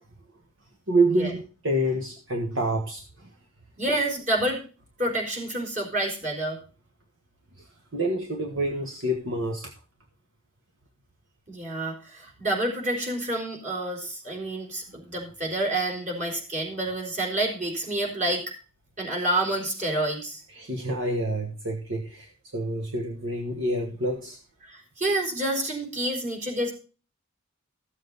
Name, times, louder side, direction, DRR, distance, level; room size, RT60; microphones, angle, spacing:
voice 1, 0.9-3.3 7.6-9.7 20.5-24.4, right 1 dB, 60° right, 1.4 m, -28 dB
voice 2, 3.8-4.6 5.0-6.6 11.5-18.4 19.0-20.4 24.6-26.7, right 1 dB, 35° right, 4.1 m, -28 dB
14.5 x 7.4 x 4.0 m
head